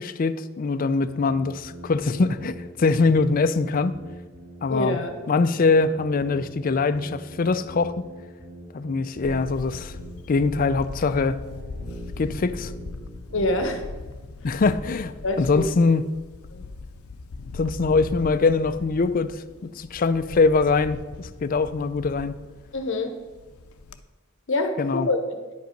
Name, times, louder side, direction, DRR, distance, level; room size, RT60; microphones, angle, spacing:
voice 1, 0.0-4.0 4.6-5.0 5.3-8.1 8.7-10.0 10.3-11.4 12.2-12.7 14.4-16.0 17.5-19.3 19.6-22.3 24.8-25.1, left 4 dB, 40° left, 12 dB, 0.4 m, -23 dB
sound 1, 1.0-13.8, right 1 dB, 65° right, 3.0 m, -42 dB
voice 2, 4.7-5.1 13.3-13.8 15.2-15.7 16.5-16.6 22.7-23.2 24.5-25.2, left 2 dB, 60° left, 6 dB, 0.9 m, -25 dB
Camera, 9.2-24.0, left 3 dB, 90° left, 0.5 m, -40 dB
10.0 x 5.3 x 5.2 m, 1.3 s
head